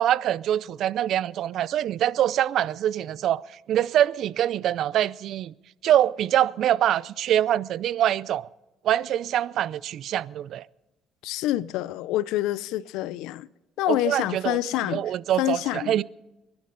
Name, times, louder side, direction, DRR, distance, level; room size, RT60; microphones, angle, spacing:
voice 1, 0.0-3.4 3.7-5.5 5.8-8.5 8.8-10.6 13.9-14.6 14.9-16.0, right 11 dB, 65° right, 0.4 m, -24 dB
voice 2, 11.2-13.5 13.8-15.1 15.4-16.0, left 15 dB, 90° left, 0.5 m, -27 dB
26.0 x 11.5 x 3.9 m
cardioid pair, 105°, 0 cm